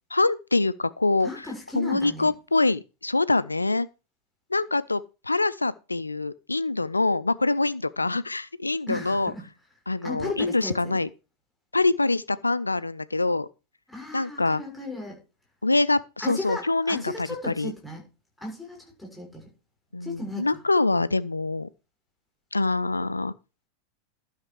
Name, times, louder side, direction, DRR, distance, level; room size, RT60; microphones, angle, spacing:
voice 1, 0.1-1.5 1.7-3.9 4.5-9.3 9.9-11.1 11.7-13.5 14.1-14.6 15.6-17.7 19.9-21.7 22.5-23.3, left 3 dB, 80° left, 0.5 m, -25 dB
voice 2, 1.2-2.3 8.0-8.2 8.9-9.4 10.0-11.0 13.9-15.2 16.2-18.0 18.4-19.5 20.0-20.6, left 2 dB, 5° left, 6.4 m, -36 dB
12.0 x 6.5 x 4.8 m
figure-of-eight pair, 90°, 0 cm